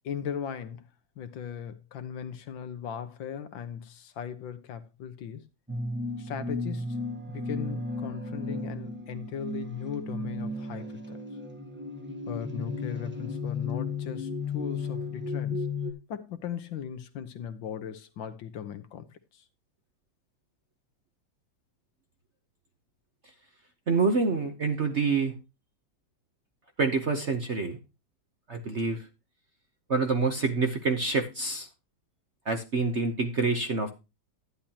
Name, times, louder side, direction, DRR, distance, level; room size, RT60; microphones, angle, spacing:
voice 1, 0.0-0.9 1.2-5.4 6.2-7.0 7.3-11.2 12.3-15.7 16.1-19.4, left 8 dB, 70° left, 1.6 m, -38 dB
sound 1, 5.7-15.9, left 3 dB, 10° right, 0.9 m, -34 dB
voice 2, 23.9-25.3 26.8-27.8 28.5-29.0 29.9-31.7 32.5-33.9, right 4 dB, 45° right, 0.9 m, -27 dB
11.5 x 10.0 x 2.9 m
omnidirectional pair, 2.2 m